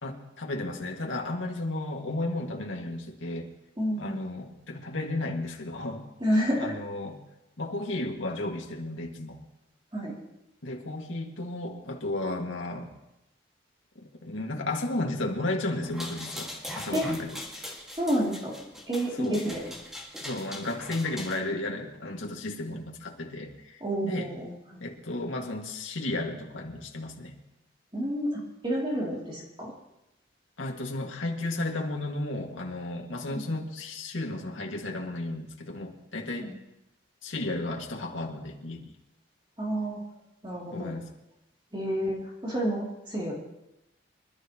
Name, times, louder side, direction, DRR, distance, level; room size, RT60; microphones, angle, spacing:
voice 1, 0.0-3.5 4.0-6.1 6.6-7.2 7.6-9.4 10.6-12.9 14.2-17.4 19.2-19.4 20.2-24.3 24.8-27.4 30.6-36.5 37.2-38.9 40.7-41.1, left 2 dB, 70° left, 0 dB, 2.0 m, -33 dB
voice 2, 3.8-4.2 6.2-6.8 9.9-10.2 16.9-17.1 17.9-19.6 23.8-24.8 27.9-29.7 33.3-33.4 36.4-36.5 39.6-40.0 40.4-40.9 41.7-43.3, equal, 25° right, -4 dB, 2.8 m, -30 dB
sound 1, 15.8-21.4, left 1 dB, ahead, 1.9 m, -41 dB
25.5 x 12.0 x 3.0 m, 0.90 s
head